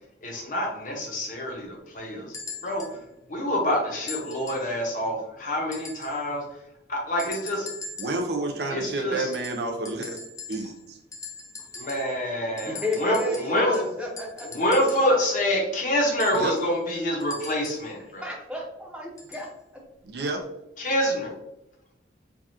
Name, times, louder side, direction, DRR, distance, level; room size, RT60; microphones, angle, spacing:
voice 1, 0.2-2.3 2.6-2.9 3.3-6.4 6.9-7.7 8.7-9.3 11.8-13.7 14.5-18.2 20.8-21.3, equal, 40° left, -1 dB, 0.8 m, -26 dB
sound 1, 2.3-3.0 4.1-4.7 5.7-6.3 7.2-8.3 9.3-10.9 11.1-12.2 12.6-15.2 16.2-17.9 19.2-19.5 20.4-20.5, left 4 dB, 15° left, 0.3 m, -41 dB
voice 2, 8.0-10.2 10.5-11.0 16.3-16.6 20.0-20.4, right 2 dB, 55° right, 3 dB, 0.5 m, -29 dB
voice 3, 12.6-14.5 18.2-19.5, left 2 dB, 5° right, -2 dB, 0.8 m, -32 dB
4.6 x 2.4 x 2.8 m, 0.86 s
head